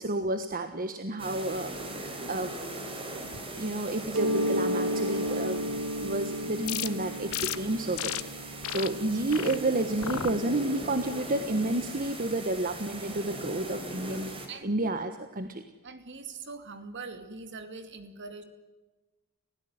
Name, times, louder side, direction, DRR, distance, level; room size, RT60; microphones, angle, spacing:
voice 1, 0.0-2.5 3.5-5.6 6.0-8.2 8.5-14.3 14.6-15.6, right 2 dB, 40° right, 8 dB, 1.4 m, -30 dB
sound 1, 1.2-14.5, right 1 dB, 25° right, 4.6 m, -40 dB
Mallet percussion, 4.1-9.7, equal, 75° right, 1.8 m, -33 dB
sound 2, 6.6-6.9 7.3-7.6 8.0-8.2 8.6-8.9 9.3-9.6 10.0-10.3 10.8-11.2, left 10 dB, 75° left, 1.1 m, -33 dB
voice 2, 14.0-14.9 15.8-18.4, right 4 dB, 55° right, 8 dB, 2.7 m, -43 dB
30.0 x 16.0 x 9.6 m, 1.2 s
head